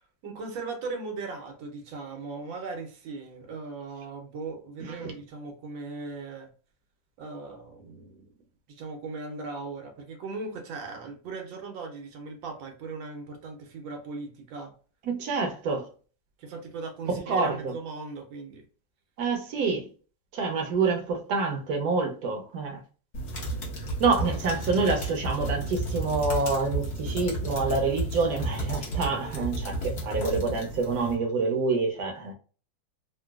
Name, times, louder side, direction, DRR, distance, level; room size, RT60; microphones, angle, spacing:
voice 1, 0.2-6.5 7.2-8.4 8.7-14.7 16.4-18.6, right 3 dB, 85° right, 1.5 m, -38 dB
voice 2, 4.8-5.1 15.1-15.9 17.3-17.7 19.2-19.9 20.3-22.8 24.0-32.3, right 4 dB, 65° right, 1.0 m, -27 dB
sound 1, 23.1-31.1, right 2 dB, 60° left, 1.4 m, -32 dB
3.8 x 2.2 x 2.3 m
omnidirectional pair, 2.0 m